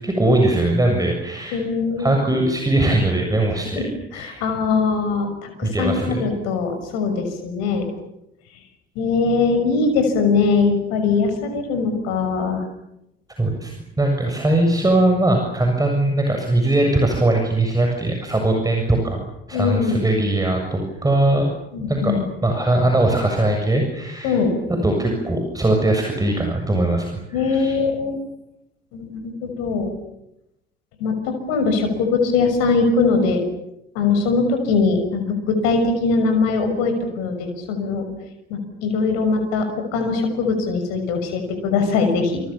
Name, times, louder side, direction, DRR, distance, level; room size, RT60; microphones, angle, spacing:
voice 1, 0.0-1.6 2.0-3.9 4.1-4.4 5.6-6.2 13.4-19.2 19.5-21.5 21.9-22.2 22.4-24.4 24.8-27.8, right 1 dB, 10° right, 3 dB, 7.3 m, -20 dB
voice 2, 1.5-2.1 3.7-3.8 4.1-7.9 9.0-12.6 19.5-20.0 21.7-22.2 24.2-24.5 27.3-28.2 28.9-29.9 31.0-33.4 33.9-38.1 38.5-42.4, left 4 dB, 60° left, 6 dB, 6.3 m, -21 dB
29.0 x 27.5 x 7.3 m, 0.86 s
figure-of-eight pair, 55°, 29 cm